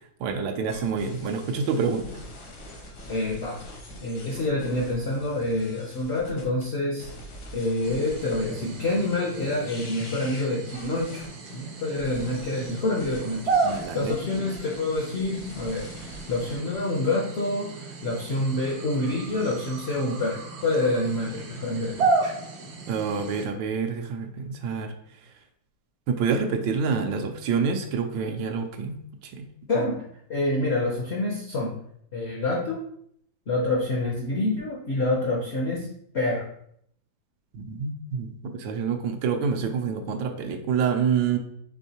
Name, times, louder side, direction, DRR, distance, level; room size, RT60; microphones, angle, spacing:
voice 1, 0.2-2.2 13.6-14.3 22.9-24.9 26.1-29.0 29.2-29.5 29.7-29.8 37.5-41.4, right 6 dB, 85° right, 6 dB, 1.3 m, -27 dB
sound 1, 0.7-6.6 7.0-16.6, left 1 dB, 80° left, 1.7 m, -45 dB
voice 2, 3.1-3.6 4.0-7.1 7.5-11.3 11.5-22.3 29.7-30.0 30.3-31.8 32.1-32.8 33.5-35.9 36.1-36.5, left 2 dB, 65° left, -3 dB, 0.6 m, -27 dB
sound 2, 7.8-23.5, right 4 dB, 65° right, 0.7 m, -33 dB
4.6 x 3.5 x 2.8 m, 0.69 s
omnidirectional pair, 2.0 m